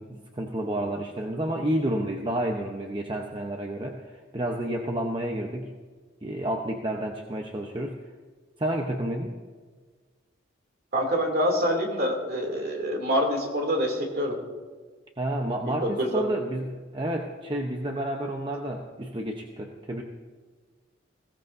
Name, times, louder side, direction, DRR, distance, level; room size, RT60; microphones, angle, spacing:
voice 1, 0.0-5.7 6.2-8.0 8.6-9.3 15.2-20.0, right 1 dB, 25° right, 2 dB, 0.8 m, -30 dB
voice 2, 10.9-14.4 15.7-16.2, equal, 50° right, 1 dB, 2.7 m, -26 dB
21.0 x 16.5 x 2.7 m, 1.4 s
head